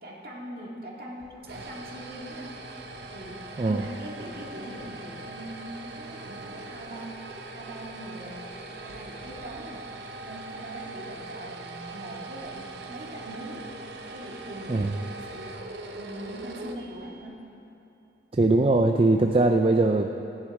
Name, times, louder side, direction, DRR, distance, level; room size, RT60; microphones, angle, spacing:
voice 1, 0.0-2.6 3.1-7.1 7.5-8.5 8.8-9.8 10.2-13.6 14.1-15.6 15.9-17.4, right 1 dB, 55° right, -3 dB, 2.0 m, -41 dB
sound 1, 1.2-17.4, right 2 dB, 70° right, 0.8 m, -41 dB
voice 2, 18.3-20.1, right 2 dB, 30° right, 4 dB, 0.4 m, -21 dB
14.5 x 9.7 x 4.8 m, 2.8 s
head